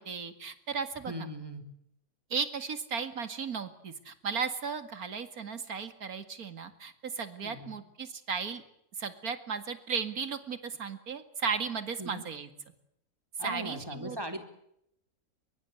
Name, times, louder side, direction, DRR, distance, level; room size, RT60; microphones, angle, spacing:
voice 1, 0.0-1.1 2.3-8.6 9.0-12.5 13.4-14.2, right 5 dB, 70° right, 11 dB, 2.6 m, -35 dB
voice 2, 1.1-1.7 7.4-7.8 12.0-12.2 13.4-14.4, right 1 dB, 15° right, 6 dB, 3.7 m, -39 dB
23.0 x 22.5 x 8.2 m, 0.76 s
omnidirectional pair, 1.6 m